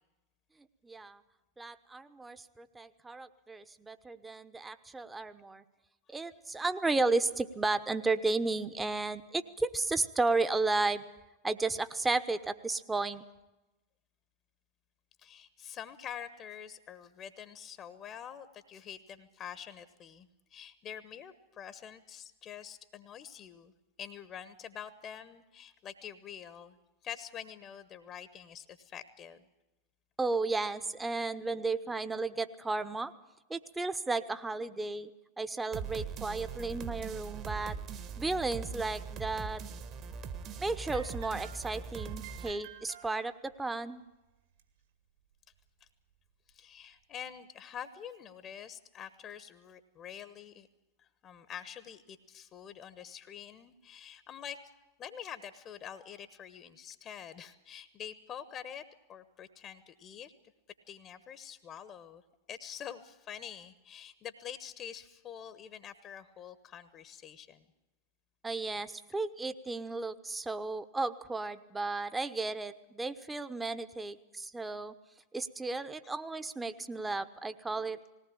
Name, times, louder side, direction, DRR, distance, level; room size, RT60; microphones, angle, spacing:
voice 1, 0.8-1.2 1.6-5.6 6.1-11.1 11.4-13.2 30.2-33.1 33.5-35.1 35.4-37.8 38.2-39.6 40.6-44.0 68.4-74.9 75.3-78.0, right 3 dB, 10° right, 13 dB, 1.0 m, -33 dB
voice 2, 15.2-23.7 24.0-26.8 27.0-29.4 45.8-45.9 46.5-50.7 51.0-54.6 55.0-58.8 59.1-60.3 60.9-62.2 62.5-67.7, left 9 dB, 30° left, 13 dB, 1.1 m, -46 dB
sound 1, 35.7-42.5, right 6 dB, 35° right, 1.5 m, -41 dB
sound 2, 40.8-43.6 44.6-44.7 45.5-45.6 46.5-46.6, right 9 dB, 55° right, 2.3 m, -52 dB
20.0 x 18.0 x 8.6 m, 1.0 s
figure-of-eight pair, 90°, 0 cm